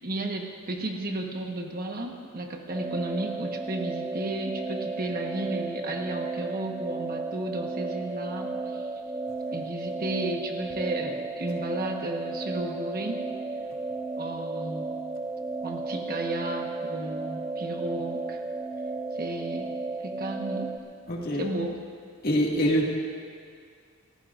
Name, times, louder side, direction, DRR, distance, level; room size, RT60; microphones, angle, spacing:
voice 1, 0.0-8.9 9.5-13.2 14.2-14.9 15.6-18.4 19.1-19.7 20.0-20.7 21.4-21.8, right 2 dB, 40° right, 2 dB, 1.2 m, -33 dB
sound 1, 2.7-20.8, right 3 dB, 15° right, 0.5 m, -34 dB
voice 2, 21.1-21.5 22.2-22.9, equal, 45° left, -2 dB, 2.1 m, -24 dB
28.5 x 15.0 x 2.6 m, 2.2 s
head